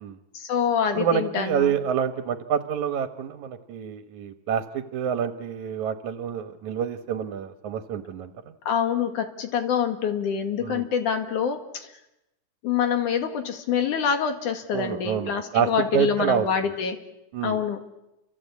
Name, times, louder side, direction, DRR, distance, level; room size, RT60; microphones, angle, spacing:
voice 1, 0.3-1.7 8.7-11.9 12.6-17.0 17.4-17.8, left 7 dB, 75° left, 6 dB, 3.4 m, -26 dB
voice 2, 0.9-8.3 10.6-10.8 14.7-16.5 17.3-17.6, right 8 dB, 70° right, 8 dB, 2.5 m, -27 dB
29.5 x 24.5 x 8.3 m, 0.91 s
omnidirectional pair, 3.6 m